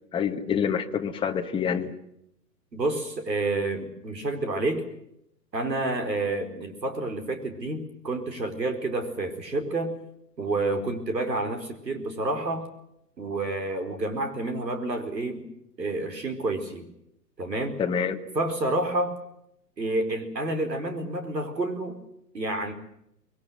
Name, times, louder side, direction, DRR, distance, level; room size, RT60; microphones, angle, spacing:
voice 1, 0.1-2.0 17.8-18.2, left 7 dB, 10° left, 4 dB, 1.2 m, -27 dB
voice 2, 2.7-4.9 5.5-9.9 10.4-12.7 13.2-15.5 15.8-16.9 17.4-17.8 18.3-19.2 19.8-22.0 22.3-22.7, right 2 dB, 80° right, 6 dB, 4.6 m, -29 dB
25.5 x 21.5 x 7.8 m, 0.78 s
figure-of-eight pair, 120°, 50 cm